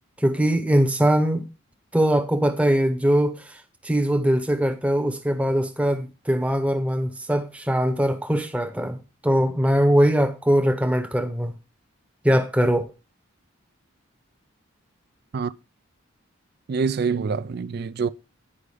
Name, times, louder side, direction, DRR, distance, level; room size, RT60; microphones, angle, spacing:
voice 1, 0.2-1.5 1.9-11.6 12.2-12.9, equal, 5° right, 0.8 m, -21 dB
voice 2, 16.7-18.1, right 5 dB, 50° right, 0.3 m, -25 dB
9.9 x 4.9 x 4.8 m
head